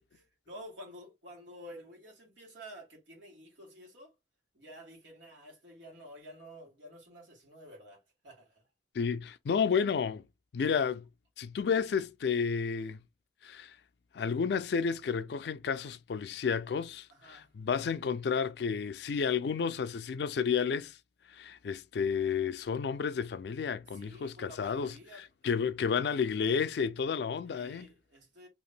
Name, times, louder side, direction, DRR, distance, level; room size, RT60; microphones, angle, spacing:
voice 1, 0.0-4.1 4.5-8.6 17.1-17.5 23.9-25.2 27.4-28.5, equal, 85° right, 1.7 m, -51 dB
voice 2, 8.9-10.2 10.5-11.0 11.4-13.0 13.4-13.8 14.1-21.0 21.3-27.9, left 6 dB, 70° left, 0.3 m, -31 dB
2.9 x 2.5 x 3.1 m
head